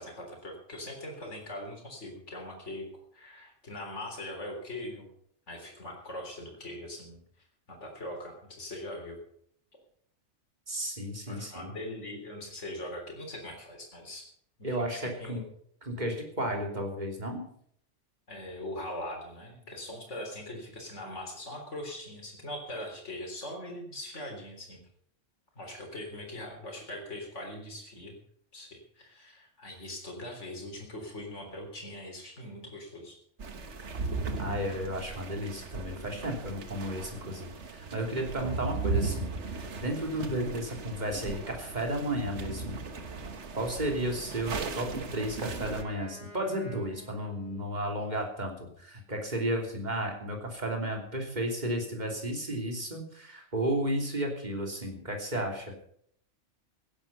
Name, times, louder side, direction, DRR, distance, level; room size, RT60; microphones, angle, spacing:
voice 1, 0.0-2.8 3.1-5.1 5.5-7.2 7.7-9.2 11.3-14.2 14.6-15.4 18.3-24.8 25.6-28.2 28.5-33.2, left 1 dB, 75° left, 1 dB, 4.0 m, -41 dB
voice 2, 10.7-11.7 14.6-15.4 15.9-17.4 34.4-42.7 43.6-55.7, right 1 dB, 35° right, 1 dB, 3.3 m, -33 dB
sound 1, 33.4-45.8, right 3 dB, 70° right, 1.6 m, -37 dB
Wind instrument woodwind instrument, 43.9-48.1, equal, 55° right, 3.3 m, -52 dB
16.5 x 11.0 x 5.6 m, 0.65 s
omnidirectional pair, 1.2 m